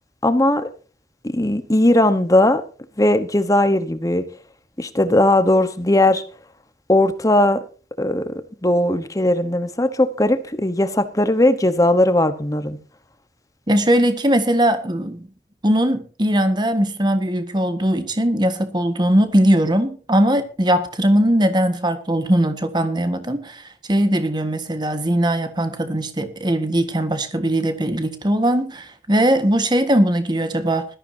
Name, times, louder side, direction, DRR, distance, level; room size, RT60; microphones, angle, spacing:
voice 1, 0.2-0.7 1.2-2.6 3.0-4.2 4.8-6.2 6.9-7.6 8.0-8.3 8.6-12.8, left 1 dB, 20° left, 1.1 m, -18 dB
voice 2, 13.7-15.3 15.6-30.9, right 1 dB, 25° right, 1.5 m, -20 dB
20.0 x 13.5 x 2.8 m
head